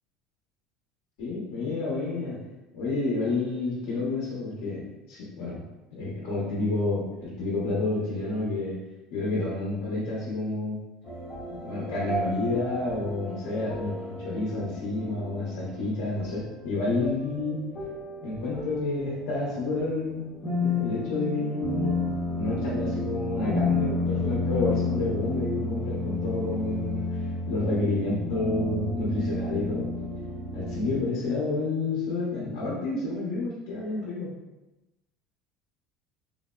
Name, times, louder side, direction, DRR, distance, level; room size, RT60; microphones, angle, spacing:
voice 1, 1.2-2.4 2.7-5.6 5.9-8.8 9.1-10.8 11.5-17.7 18.2-20.3 20.6-22.0 22.4-27.0 27.5-29.9 30.5-34.3, left 2 dB, 90° left, -7 dB, 0.9 m, -29 dB
sound 1, 11.0-31.0, left 2 dB, 20° left, 0.8 m, -32 dB
3.3 x 2.0 x 2.3 m, 1.0 s
cardioid pair, 175°, 0 cm